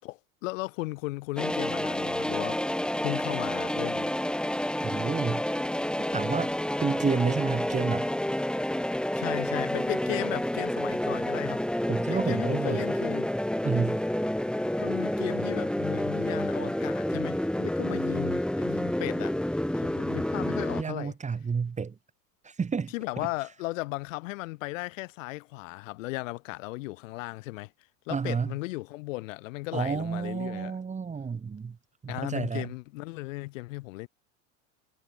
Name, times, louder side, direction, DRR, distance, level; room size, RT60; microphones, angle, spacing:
voice 1, 0.0-2.6 3.0-4.1 9.1-11.7 12.1-13.3 14.8-21.1 22.9-27.7 28.1-30.8 32.1-34.1, left 21 dB, 75° left, 6.9 m, -36 dB
sound 1, 1.4-20.8, left 1 dB, ahead, 5.3 m, -29 dB
voice 2, 4.8-5.4 6.1-6.5 6.8-8.1 11.9-12.9 13.6-14.0 20.8-21.9 22.4-22.9 28.1-28.5 29.7-31.8 32.0-32.7, right 5 dB, 20° right, 2.0 m, -30 dB
supercardioid pair, 120°, 38 cm